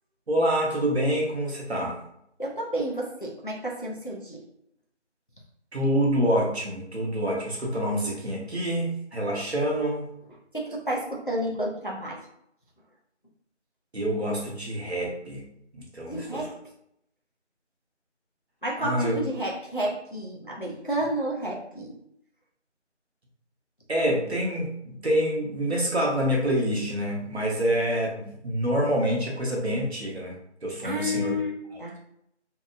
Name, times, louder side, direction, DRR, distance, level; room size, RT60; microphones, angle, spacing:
voice 1, 0.3-2.0 5.7-10.1 13.9-15.4 15.7-16.5 18.8-19.1 23.9-30.3 30.6-31.3, equal, 60° right, -2 dB, 0.8 m, -26 dB
voice 2, 2.4-4.4 10.5-12.2 16.1-16.5 18.6-22.0 30.8-32.0, equal, 45° left, -3 dB, 0.4 m, -31 dB
2.7 x 2.0 x 2.4 m, 0.75 s
figure-of-eight pair, 175°, 36 cm